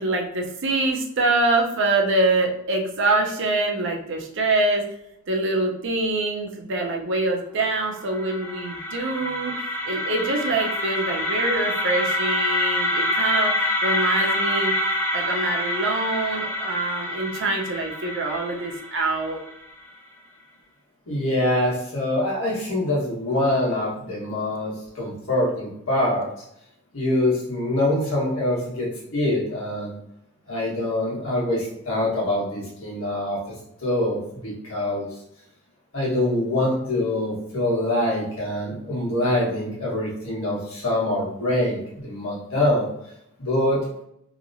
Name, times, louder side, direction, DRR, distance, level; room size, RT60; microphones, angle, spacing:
voice 1, 0.0-4.8 5.3-9.5 9.9-14.7 15.1-19.4, right 2 dB, 65° right, 1 dB, 0.6 m, -24 dB
sound 1, 7.9-19.8, left 1 dB, 10° left, 0.5 m, -26 dB
voice 2, 21.1-26.3 26.9-29.9 30.5-33.4 33.8-35.1 35.9-42.9 43.4-43.8, left 1 dB, 80° left, -5 dB, 1.4 m, -24 dB
2.9 x 2.8 x 2.6 m, 0.78 s
head